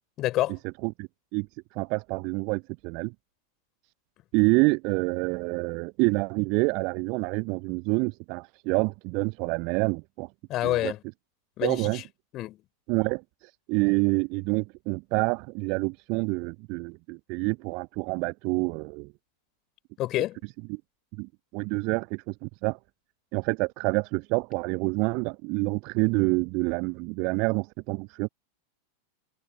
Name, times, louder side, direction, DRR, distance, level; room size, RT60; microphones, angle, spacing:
voice 1, 0.2-0.6 10.5-11.0 11.6-12.0 12.3-12.6 20.0-20.4, left 15 dB, 35° left, 5.2 m, -27 dB
voice 2, 0.8-1.5 1.7-3.1 4.3-10.3 10.6-10.9 11.6-12.0 12.9-13.2 13.7-19.1 20.7-20.8 21.2-22.8 23.3-28.3, right 30 dB, 45° right, 0.7 m, -27 dB
figure-of-eight pair, 90°, 0 cm